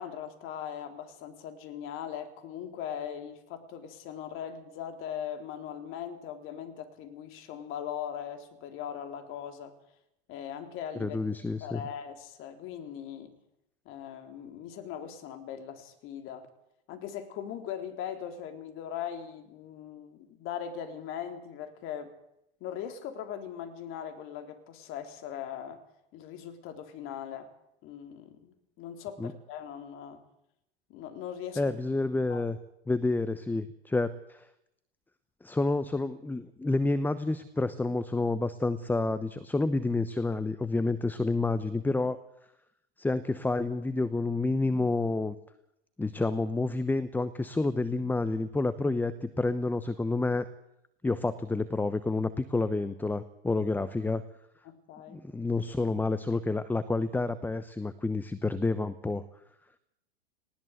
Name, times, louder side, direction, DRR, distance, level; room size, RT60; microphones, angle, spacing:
voice 1, 0.0-9.7 10.3-11.2 11.6-13.3 13.9-16.5 16.9-22.2 22.6-25.8 26.1-27.5 27.8-30.2 30.9-31.8 32.3-32.4 54.6-55.2, left 9 dB, 40° left, 3.7 m, -40 dB
voice 2, 11.0-11.8 29.2-29.3 31.6-32.6 32.9-34.5 35.4-42.2 43.0-45.4 46.0-50.5 51.0-54.2 55.1-59.3, left 3 dB, 5° left, 0.9 m, -29 dB
19.5 x 19.0 x 8.0 m
hypercardioid pair, 100°, 31 cm